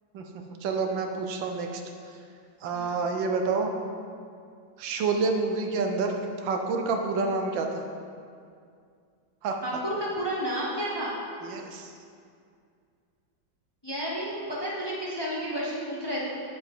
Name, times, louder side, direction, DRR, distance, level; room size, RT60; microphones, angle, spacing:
voice 1, 0.6-1.8 2.6-3.7 4.8-7.8 9.4-9.6 11.4-11.9, right 4 dB, 85° right, 4 dB, 1.5 m, -28 dB
voice 2, 9.6-11.2 13.8-16.3, equal, 20° left, -5 dB, 0.9 m, -31 dB
8.4 x 7.9 x 3.6 m, 2.3 s
omnidirectional pair, 2.0 m